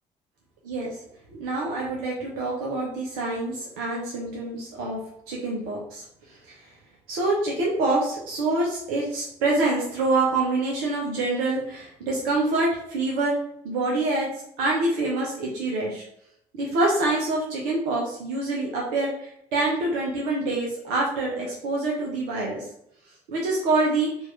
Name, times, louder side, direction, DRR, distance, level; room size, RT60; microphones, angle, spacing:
voice 1, 1.3-5.0 5.3-6.0 7.1-13.4 13.6-14.3 14.6-16.0 16.6-22.6 23.3-24.1, right 2 dB, 70° right, -3 dB, 0.9 m, -26 dB
4.5 x 2.6 x 3.1 m, 0.73 s
figure-of-eight pair, 45°, 20 cm